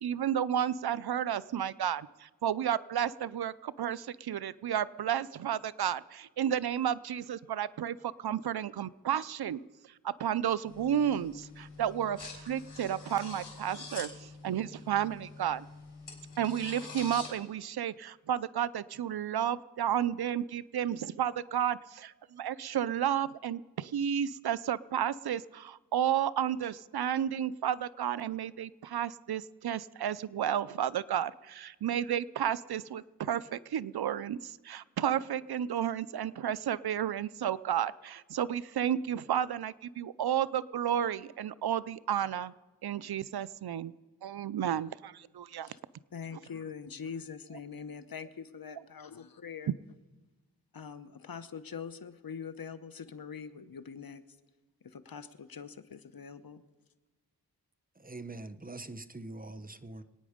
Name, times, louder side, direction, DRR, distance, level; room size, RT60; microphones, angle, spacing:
voice 1, 0.0-9.6 10.0-15.7 16.4-42.5 42.8-43.9 44.2-45.7, right 10 dB, 75° right, 0.5 m, -32 dB
sound 1, 10.7-17.3, left 4 dB, 90° left, 3.6 m, -46 dB
voice 2, 46.1-49.7 50.7-54.2 54.9-56.6, left 6 dB, 65° left, 1.0 m, -43 dB
voice 3, 58.0-60.0, right 2 dB, 20° right, 0.9 m, -43 dB
25.5 x 9.4 x 5.1 m
cardioid pair, 50°, 38 cm